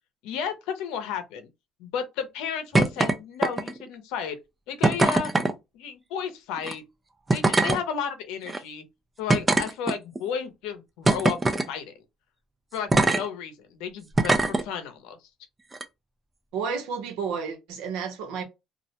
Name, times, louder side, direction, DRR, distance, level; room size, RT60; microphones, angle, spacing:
voice 1, 0.2-1.5 1.8-4.4 4.7-5.3 5.7-6.8 7.3-8.8 9.2-11.4 11.7-11.9 12.7-15.2, left 7 dB, 90° left, 0.6 m, -33 dB
sound 1, 2.7-3.1 3.4-3.9 4.8-5.5 6.6-6.7 7.3-7.8 8.5-8.6 9.3-10.2 11.1-11.7 12.9-13.2 14.2-14.6 15.7-15.8, right 2 dB, 15° right, 0.4 m, -22 dB
voice 2, 16.5-18.4, right 6 dB, 90° right, 0.7 m, -31 dB
2.4 x 2.0 x 2.7 m
cardioid pair, 115°, 0 cm